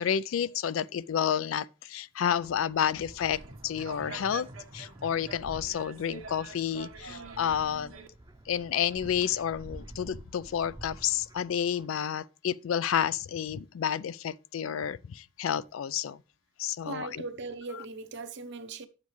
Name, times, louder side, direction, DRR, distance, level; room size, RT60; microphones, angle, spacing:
voice 1, 0.0-4.5 4.7-8.0 8.5-16.2 16.6-17.2, left 9 dB, 80° left, 0.4 m, -30 dB
sound 1, 2.3-11.9, right 1 dB, 20° right, 0.6 m, -50 dB
sound 2, 3.2-8.1, right 4 dB, 90° right, 1.2 m, -46 dB
voice 2, 16.8-18.9, right 3 dB, 60° right, 0.8 m, -39 dB
10.5 x 7.4 x 3.1 m
head